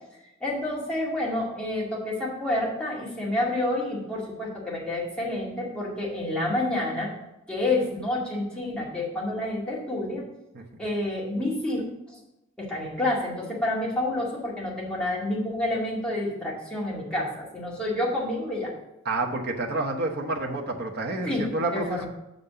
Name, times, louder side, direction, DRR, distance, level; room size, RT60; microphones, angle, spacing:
voice 1, 0.4-7.1 7.5-10.2 10.8-11.8 12.6-18.7 21.3-22.1, left 1 dB, 5° left, -6 dB, 2.2 m, -29 dB
voice 2, 19.0-22.1, right 2 dB, 50° right, 0 dB, 0.9 m, -29 dB
6.0 x 5.3 x 6.9 m, 0.91 s
head